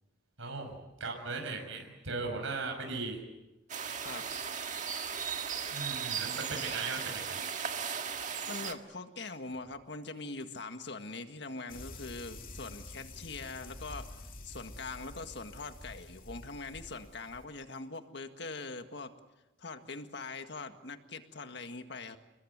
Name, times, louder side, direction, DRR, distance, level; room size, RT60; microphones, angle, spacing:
voice 1, 0.4-3.2 5.7-7.4, right 3 dB, 90° right, 2 dB, 6.1 m, -38 dB
sound 1, 3.7-8.7, right 7 dB, 40° right, 1.8 m, -36 dB
voice 2, 8.4-14.1 14.4-19.1 19.6-22.2, left 3 dB, 60° left, 7 dB, 1.8 m, -42 dB
sound 2, 11.7-17.5, left 2 dB, 45° left, 2.7 m, -48 dB
29.0 x 21.5 x 8.2 m, 1.0 s
head